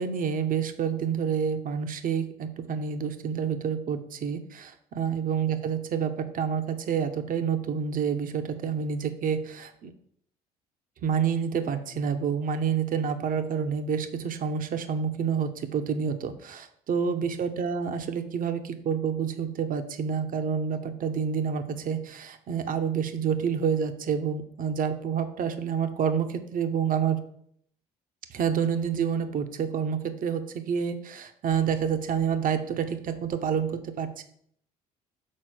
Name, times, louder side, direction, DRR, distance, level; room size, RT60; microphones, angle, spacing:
voice 1, 0.0-9.9 11.0-27.2 28.3-34.2, right 7 dB, 55° right, 8 dB, 1.0 m, -28 dB
6.6 x 4.2 x 6.0 m, 0.67 s
hypercardioid pair, 65°, 17 cm